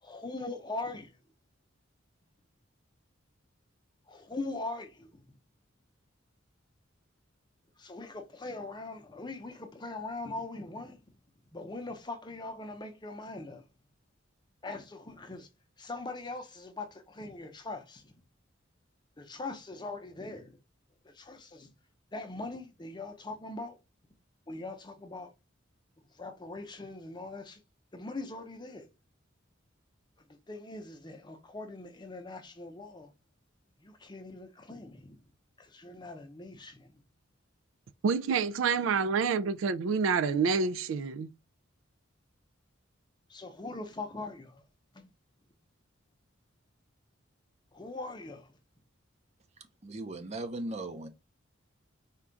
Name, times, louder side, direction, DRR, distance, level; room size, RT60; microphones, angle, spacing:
voice 1, 0.0-1.1 4.1-5.3 7.8-11.2 11.5-13.7 14.6-15.5 15.8-18.1 19.2-20.6 21.0-21.7 22.1-23.8 24.5-25.3 26.1-27.6 27.9-28.9 30.5-33.1 33.8-35.2 35.6-37.0 43.3-44.6 44.9-45.1 47.7-48.5, left 2 dB, 20° left, 0.7 m, -41 dB
voice 2, 38.0-41.3, right 5 dB, 75° right, 0.3 m, -28 dB
voice 3, 49.8-51.1, right 2 dB, 35° right, 0.7 m, -37 dB
4.4 x 2.4 x 3.8 m
head